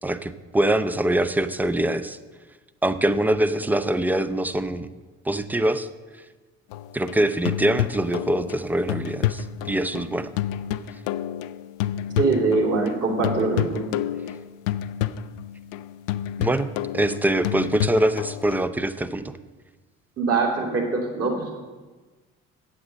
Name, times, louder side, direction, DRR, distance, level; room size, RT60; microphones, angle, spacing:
voice 1, 0.0-2.2 2.8-4.9 5.3-5.9 6.9-10.3 16.4-19.3, right 1 dB, 5° right, 12 dB, 0.5 m, -24 dB
sound 1, 6.7-13.0 13.2-18.7, left 11 dB, 70° left, 0.5 m, -29 dB
voice 2, 12.2-13.8 20.2-21.5, right 3 dB, 35° right, -1 dB, 3.0 m, -23 dB
8.7 x 7.9 x 6.4 m, 1.3 s
figure-of-eight pair, 50°, 41 cm